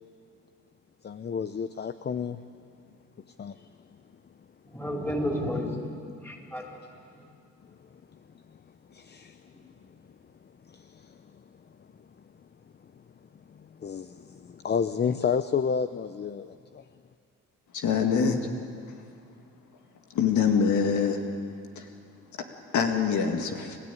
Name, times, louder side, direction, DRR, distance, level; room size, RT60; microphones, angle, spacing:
voice 1, 1.0-2.4 3.4-3.7 8.9-9.4 10.7-11.2 13.5-16.8, left 6 dB, 35° left, 11 dB, 0.7 m, -31 dB
voice 2, 4.7-6.8 7.1-7.2, left 1 dB, 5° left, 0 dB, 4.4 m, -32 dB
voice 3, 17.7-18.5 20.1-21.2 21.8-21.9 22.7-23.8, left 6 dB, 75° left, 4 dB, 2.0 m, -24 dB
29.5 x 14.0 x 9.3 m, 2.4 s
cardioid pair, 90°, 30 cm